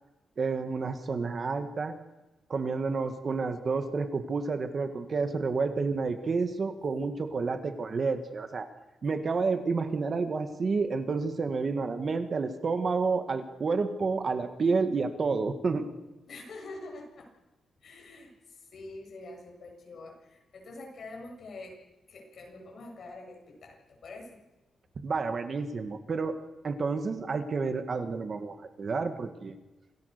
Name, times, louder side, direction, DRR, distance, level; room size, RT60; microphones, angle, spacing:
voice 1, 0.4-1.9 2.5-8.7 9.0-15.9 25.0-26.4 26.6-29.6, right 4 dB, 35° right, 8 dB, 1.8 m, -30 dB
voice 2, 6.8-7.5 16.3-17.3 17.8-21.8 22.1-24.4, left 2 dB, 50° left, 1 dB, 7.7 m, -46 dB
28.0 x 19.0 x 6.8 m, 1.0 s
wide cardioid pair, 165°, 0 cm